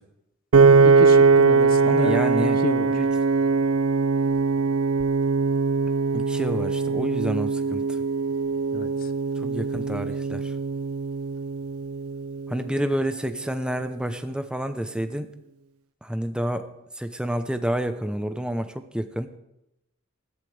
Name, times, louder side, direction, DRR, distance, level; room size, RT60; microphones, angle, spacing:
Piano, 0.5-12.8, right 4 dB, 85° right, 0.5 m, -21 dB
voice 1, 0.8-2.2 2.6-3.0 8.7-8.9, left 2 dB, 45° left, 11 dB, 0.9 m, -30 dB
voice 2, 1.8-2.6 2.9-3.1 6.1-7.8 9.4-10.4 12.5-15.3 16.0-16.7 17.0-19.3, equal, 5° right, 8 dB, 0.8 m, -29 dB
20.0 x 14.5 x 3.4 m, 0.87 s
head